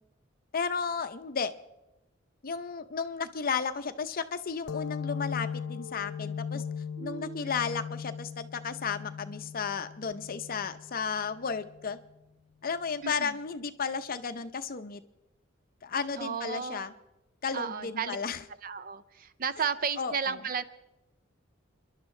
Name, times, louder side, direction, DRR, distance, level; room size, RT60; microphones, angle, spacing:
voice 1, 0.5-1.5 2.4-6.6 7.0-12.0 12.6-15.0 15.8-16.9 17.4-18.4 20.0-20.4, left 5 dB, 45° left, 10 dB, 0.6 m, -33 dB
sound 1, 4.7-12.0, left 7 dB, 85° left, 0.4 m, -39 dB
voice 2, 7.0-7.5 13.0-13.4 16.2-16.9 17.5-18.2 18.6-20.6, right 6 dB, 45° right, 13 dB, 0.5 m, -34 dB
29.5 x 11.5 x 3.2 m, 0.94 s
head